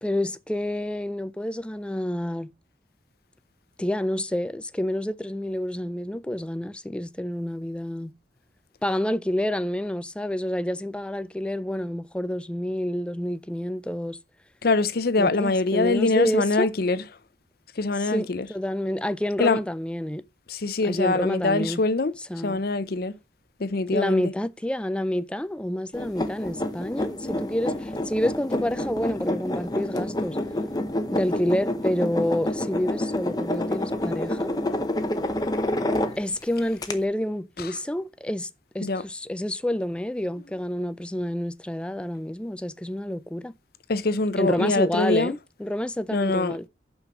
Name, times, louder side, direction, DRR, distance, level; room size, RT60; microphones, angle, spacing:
voice 1, 0.0-2.5 3.8-8.1 8.8-14.2 15.2-16.7 18.0-20.2 20.8-21.8 22.3-22.6 23.9-30.4 31.1-34.5 36.2-38.5 38.7-43.5 44.4-46.7, left 1 dB, 5° left, 0.3 m, -28 dB
voice 2, 14.6-17.0 17.8-18.5 19.4-19.6 20.5-22.1 22.4-23.1 23.6-24.3 37.6-37.7 38.8-39.0 43.9-45.3 46.1-46.6, left 3 dB, 55° left, 0.7 m, -24 dB
sound 1, 25.9-36.4 36.8-36.9, left 1 dB, 20° left, 0.7 m, -28 dB
5.8 x 5.3 x 5.9 m
head